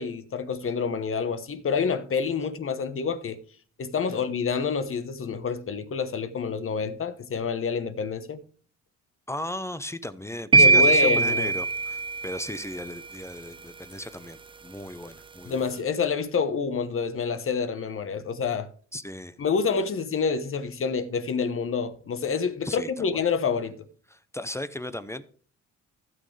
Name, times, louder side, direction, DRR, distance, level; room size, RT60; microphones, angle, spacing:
voice 1, 0.0-3.4 3.8-8.4 10.6-11.5 15.4-18.7 19.4-23.7, left 5 dB, 45° left, 1.1 m, -28 dB
voice 2, 9.3-15.6 18.9-19.4 22.6-23.2 24.1-25.3, left 1 dB, 10° left, 0.7 m, -36 dB
sound 1, 10.5-12.6, right 4 dB, 20° right, 0.3 m, -20 dB
15.5 x 6.3 x 3.3 m
cardioid pair, 90°, 30 cm